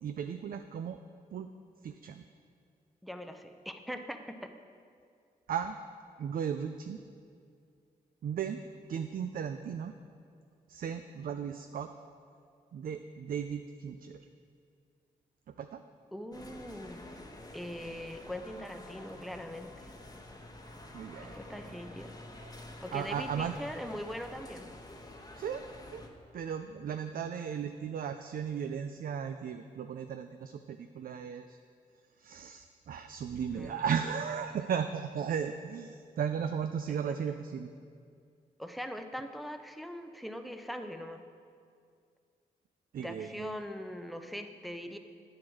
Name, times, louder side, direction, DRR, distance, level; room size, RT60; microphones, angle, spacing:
voice 1, 0.0-1.0 1.3-1.5 1.8-2.2 5.5-5.8 6.2-7.0 8.2-8.6 8.9-9.9 10.7-11.9 12.7-14.2 15.5-15.8 20.9-21.8 22.4-22.5 22.9-23.5 25.4-25.6 25.9-26.0 26.3-31.6 32.2-37.7 42.9-43.6, right 7 dB, 60° right, 8 dB, 0.4 m, -36 dB
voice 2, 3.0-4.5 16.1-17.0 17.5-19.9 21.2-22.1 22.8-24.7 33.5-33.8 36.9-37.1 38.6-41.2 43.0-45.0, equal, ahead, 6 dB, 0.7 m, -41 dB
sound 1, 16.3-26.1, left 1 dB, 25° left, 1.0 m, -48 dB
8.6 x 4.7 x 6.2 m, 2.3 s
supercardioid pair, 45°, 17 cm